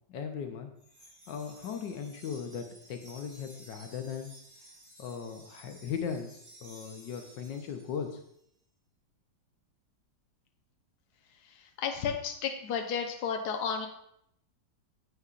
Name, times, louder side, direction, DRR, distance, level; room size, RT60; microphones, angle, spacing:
voice 1, 0.1-0.7 1.3-4.3 5.0-8.2, left 7 dB, 85° left, 5 dB, 1.5 m, -38 dB
Wind chime, 0.8-8.3, right 1 dB, 40° right, 2.7 m, -55 dB
voice 2, 11.4-13.9, left 6 dB, 65° left, 4 dB, 1.3 m, -33 dB
9.6 x 8.0 x 2.5 m, 0.73 s
omnidirectional pair, 1.9 m